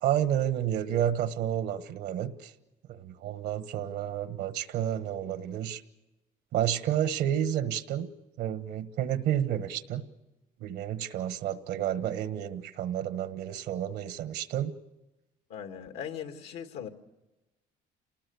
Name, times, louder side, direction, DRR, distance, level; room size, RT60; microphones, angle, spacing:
voice 1, 0.0-2.5 2.9-5.8 6.5-8.1 8.4-10.0 10.6-14.7, right 10 dB, 80° right, 12 dB, 1.3 m, -30 dB
voice 2, 15.5-16.9, left 8 dB, 90° left, 6 dB, 2.0 m, -39 dB
28.0 x 19.5 x 7.0 m, 1.0 s
cardioid pair, 110°, 17 cm